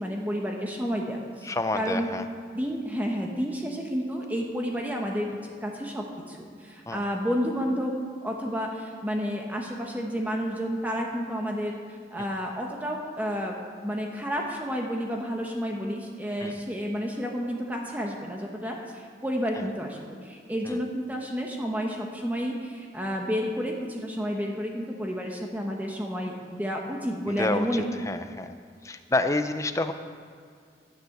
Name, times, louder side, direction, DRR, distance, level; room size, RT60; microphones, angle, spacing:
voice 1, 0.0-2.1 2.5-5.3 5.6-7.9 8.2-13.5 13.8-27.8, equal, 10° right, 0 dB, 1.0 m, -31 dB
voice 2, 1.4-2.2 6.9-7.0 16.4-16.5 20.6-20.8 27.3-28.5 28.8-29.9, left 2 dB, 15° left, 9 dB, 0.5 m, -28 dB
12.0 x 6.9 x 7.9 m, 2.2 s
head